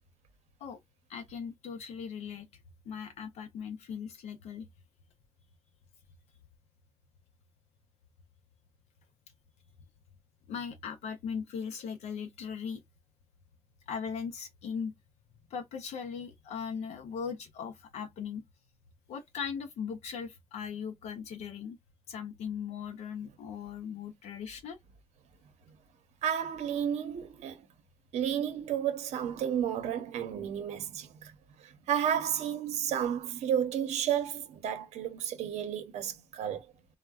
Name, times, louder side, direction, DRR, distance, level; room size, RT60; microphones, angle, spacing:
voice 1, 1.1-2.5 2.9-4.7 10.5-12.8 13.9-14.9 15.5-18.4 19.1-21.8 22.1-24.8, left 6 dB, 75° left, 0.5 m, -39 dB
voice 2, 26.2-27.6 28.1-31.3 31.9-36.6, right 9 dB, 75° right, 0.7 m, -32 dB
3.3 x 2.1 x 2.3 m
cardioid pair, 125°, 11 cm